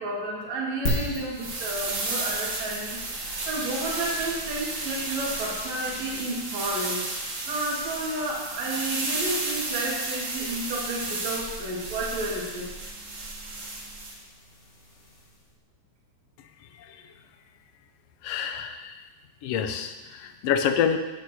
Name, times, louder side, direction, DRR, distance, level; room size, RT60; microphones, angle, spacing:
voice 1, 0.0-3.0 3.5-7.0 7.5-12.7, right 2 dB, 65° right, -4 dB, 3.2 m, -31 dB
sound 1, 0.8-15.6, left 1 dB, 40° left, 1.0 m, -41 dB
sound 2, 1.3-14.2, right 2 dB, 50° right, 2.4 m, -33 dB
voice 2, 18.2-19.0 19.4-21.0, left 8 dB, 75° left, 7 dB, 1.5 m, -27 dB
16.5 x 8.7 x 2.8 m, 1.2 s
omnidirectional pair, 3.4 m